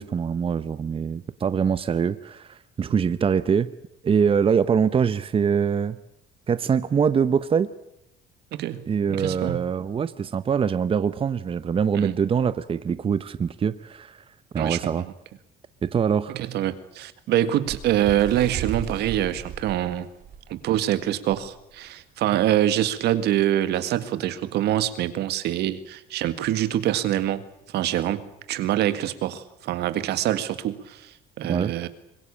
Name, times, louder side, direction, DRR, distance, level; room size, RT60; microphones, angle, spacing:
voice 1, 0.0-3.7 4.0-6.0 6.5-7.7 8.9-14.2 14.5-15.0 15.8-16.4 31.5-31.7, right 7 dB, 35° right, 13 dB, 0.9 m, -23 dB
voice 2, 8.5-8.8 9.1-9.7 11.9-12.2 14.6-15.1 16.3-20.1 20.5-27.4 27.7-31.1 31.4-31.9, right 12 dB, 75° right, 12 dB, 1.9 m, -25 dB
Bird, 17.6-20.8 21.3-21.5 21.7-22.0 22.8-22.9, right 7 dB, 60° right, 4.8 m, -35 dB
24.5 x 21.5 x 8.6 m, 0.80 s
cardioid pair, 110°, 17 cm